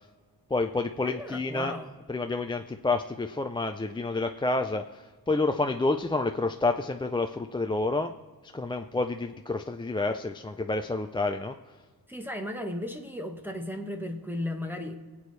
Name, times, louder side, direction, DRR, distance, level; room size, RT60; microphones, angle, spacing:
voice 1, 0.5-1.7 2.1-8.1 8.5-11.6, left 3 dB, 15° left, 5 dB, 0.4 m, -29 dB
voice 2, 1.0-1.9 12.1-15.0, left 1 dB, 5° right, 2 dB, 1.0 m, -35 dB
25.5 x 8.6 x 3.2 m, 1.5 s
wide cardioid pair, 110°, 38 cm